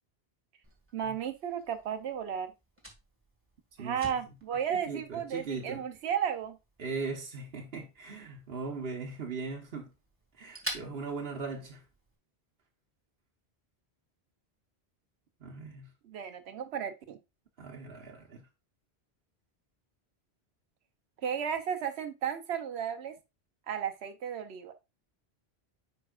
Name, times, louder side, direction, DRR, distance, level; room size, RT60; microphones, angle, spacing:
Fire, 0.6-12.2, right 1 dB, 10° right, 1.9 m, -49 dB
voice 1, 0.9-2.5 3.8-6.6 16.1-17.2 21.2-23.2 23.7-24.7, right 8 dB, 85° right, 1.0 m, -34 dB
voice 2, 3.8-4.4 4.7-5.9 6.8-9.9 10.3-11.8 15.4-15.9 17.6-18.5, right 4 dB, 65° right, 1.3 m, -39 dB
9.5 x 5.2 x 2.4 m
omnidirectional pair, 1.1 m